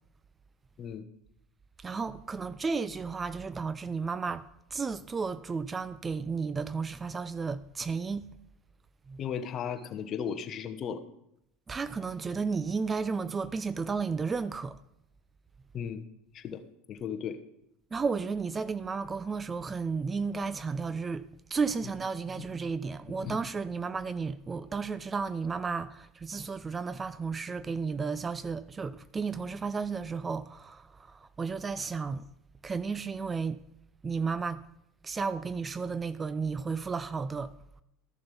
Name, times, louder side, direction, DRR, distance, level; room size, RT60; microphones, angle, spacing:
voice 1, 1.8-8.3 9.1-9.2 11.7-14.8 17.9-21.3 21.5-32.3 32.6-33.6 34.0-34.6 35.0-37.5, right 5 dB, 25° right, 0.4 m, -33 dB
voice 2, 9.2-11.0 15.7-16.0 16.3-16.6 16.9-17.4 22.4-22.5 23.2-23.4, left 7 dB, 40° left, 1.1 m, -35 dB
13.5 x 6.8 x 5.4 m
hypercardioid pair, 95°, 0 cm